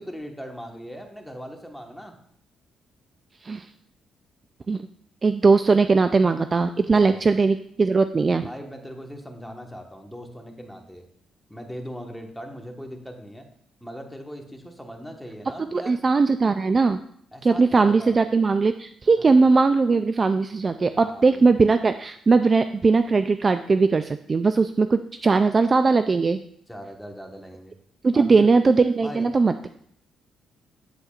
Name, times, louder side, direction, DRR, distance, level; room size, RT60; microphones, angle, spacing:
voice 1, 0.0-2.2 6.7-7.2 8.4-11.0 11.5-13.5 13.8-16.0 17.3-18.2 19.2-19.3 20.9-21.4 26.7-27.7 28.1-28.5 29.0-29.3, equal, ahead, 2 dB, 1.3 m, -39 dB
voice 2, 5.2-8.5 15.7-17.0 17.4-26.4 28.0-29.5, right 4 dB, 35° right, 10 dB, 0.3 m, -19 dB
8.2 x 8.0 x 2.4 m, 0.66 s
cardioid pair, 90°, 0 cm